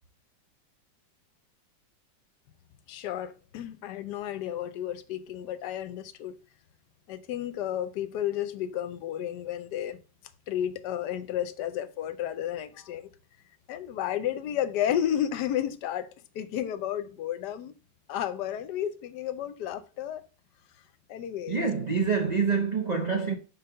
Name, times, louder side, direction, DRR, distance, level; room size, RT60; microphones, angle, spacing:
voice 1, 2.9-6.4 7.1-10.0 10.5-13.1 13.7-16.1 16.3-17.7 18.1-20.2 21.1-21.7, left 10 dB, 70° left, 1.2 m, -32 dB
voice 2, 21.5-23.4, right 5 dB, 85° right, 0.3 m, -26 dB
5.5 x 4.1 x 5.5 m
omnidirectional pair, 2.0 m